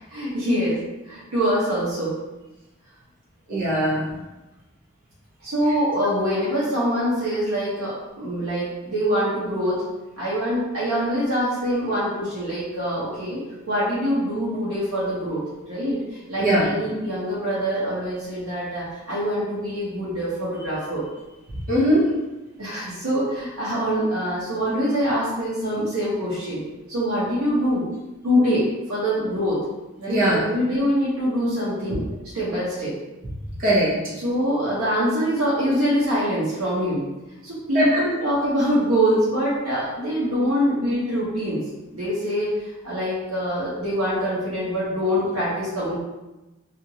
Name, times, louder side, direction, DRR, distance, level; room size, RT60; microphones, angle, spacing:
voice 1, 0.1-0.8 1.0-2.2 5.4-9.8 10.2-13.4 13.7-21.0 22.6-26.6 26.9-27.8 28.2-29.6 30.0-32.0 32.3-32.9 34.2-37.1 37.4-41.6 41.9-45.9, equal, 90° right, -10 dB, 0.8 m, -24 dB
voice 2, 3.5-4.2 16.4-16.7 21.7-22.0 30.1-30.4 33.6-34.0 37.7-38.0, right 1 dB, 40° right, -7 dB, 0.7 m, -20 dB
2.8 x 2.4 x 2.7 m, 1.1 s
head